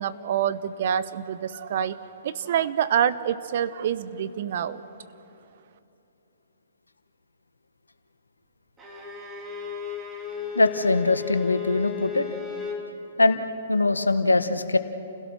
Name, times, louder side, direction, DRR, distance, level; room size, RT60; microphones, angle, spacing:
voice 1, 0.0-4.8, right 9 dB, 50° right, 13 dB, 1.0 m, -27 dB
Bowed string instrument, 8.8-12.9, left 7 dB, 20° right, 3.5 m, -35 dB
voice 2, 10.5-12.3 13.2-13.4 13.7-14.8, left 3 dB, 85° left, 10 dB, 1.3 m, -22 dB
30.0 x 17.0 x 6.2 m, 2.9 s
figure-of-eight pair, 120°, 0 cm